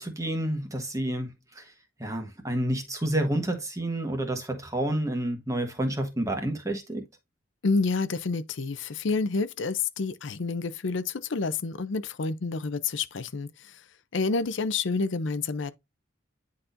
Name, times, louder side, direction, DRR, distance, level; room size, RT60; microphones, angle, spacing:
voice 1, 0.0-1.7 2.0-7.1, right 1 dB, 15° right, 1.3 m, -29 dB
voice 2, 7.6-13.8 14.1-15.7, left 4 dB, 65° left, 0.5 m, -29 dB
9.9 x 4.2 x 2.5 m
head